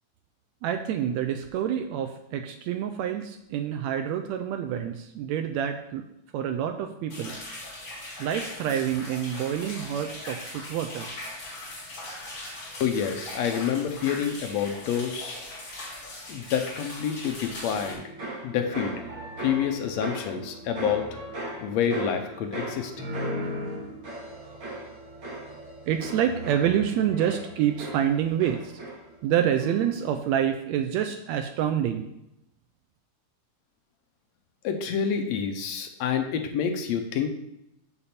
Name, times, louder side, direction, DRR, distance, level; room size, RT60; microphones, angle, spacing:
voice 1, 0.6-6.0 6.3-7.3 8.2-11.1 25.9-28.7 29.2-32.1, right 9 dB, 85° right, 6 dB, 1.6 m, -27 dB
sound 1, 7.1-17.9, left 1 dB, 40° left, 3.6 m, -40 dB
voice 2, 12.8-15.4 16.3-18.0 18.4-18.9 19.4-21.1 21.6-22.9 34.6-37.3, left 8 dB, 75° left, 6 dB, 1.7 m, -28 dB
sound 2, 17.7-29.3 29.6-30.1, right 1 dB, 45° right, 2.1 m, -37 dB
6.9 x 6.8 x 4.3 m, 0.82 s
omnidirectional pair, 3.6 m